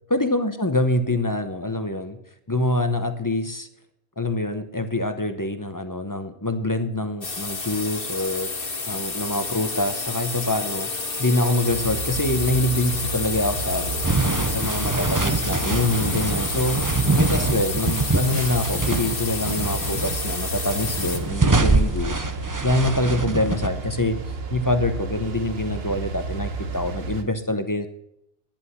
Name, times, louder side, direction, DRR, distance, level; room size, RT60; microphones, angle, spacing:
voice 1, 0.1-2.2 2.5-3.7 4.2-8.5 8.9-10.9 11.2-14.1 14.5-16.8 17.2-22.3 22.6-24.2 24.5-27.9, left 1 dB, 20° left, 9 dB, 0.9 m, -25 dB
sound 1, 7.2-21.2, left 3 dB, 60° left, 1.8 m, -30 dB
sound 2, 11.7-27.2, right 4 dB, 75° right, 1.3 m, -32 dB
sound 3, 14.0-19.1 19.4-20.3 20.8-23.7, right 3 dB, 20° right, 0.7 m, -24 dB
11.5 x 10.5 x 5.7 m, 0.78 s
omnidirectional pair, 1.0 m